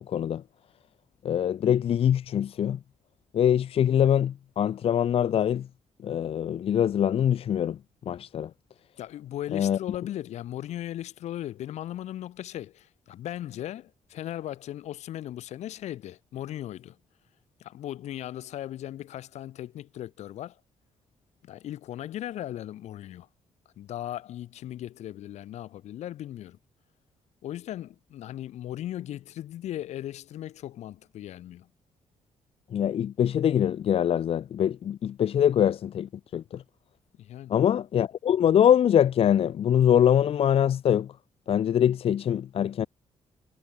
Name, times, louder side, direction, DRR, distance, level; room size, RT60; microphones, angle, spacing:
voice 1, 0.1-0.4 1.2-2.8 3.3-5.7 6.0-7.8 8.1-8.5 9.5-9.8 32.7-36.6 37.5-41.1 41.5-42.9, left 9 dB, 60° left, 0.7 m, -23 dB
voice 2, 9.0-17.0 17.6-20.6 21.4-23.3 23.8-26.6 27.4-31.7 37.2-37.5, left 12 dB, 85° left, 1.9 m, -37 dB
cardioid pair, 100°, 11 cm